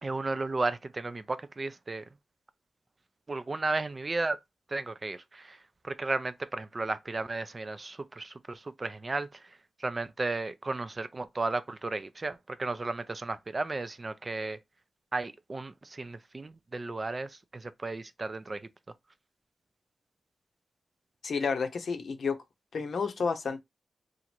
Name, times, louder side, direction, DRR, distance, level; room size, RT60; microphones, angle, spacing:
voice 1, 0.0-2.1 3.3-4.4 4.7-14.6 15.1-18.7, right 3 dB, 35° right, 0.4 m, -34 dB
voice 2, 21.2-22.4 22.7-23.6, left 5 dB, 70° left, 0.6 m, -30 dB
2.9 x 2.5 x 4.3 m
cardioid pair, 80°, 0 cm